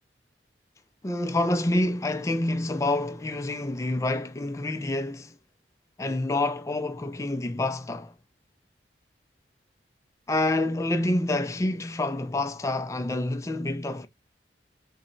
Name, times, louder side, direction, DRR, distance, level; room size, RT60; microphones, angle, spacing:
voice 1, 1.0-5.3 6.0-8.1 10.3-14.1, left 2 dB, 15° left, 0.3 m, -27 dB
4.0 x 2.1 x 3.8 m
head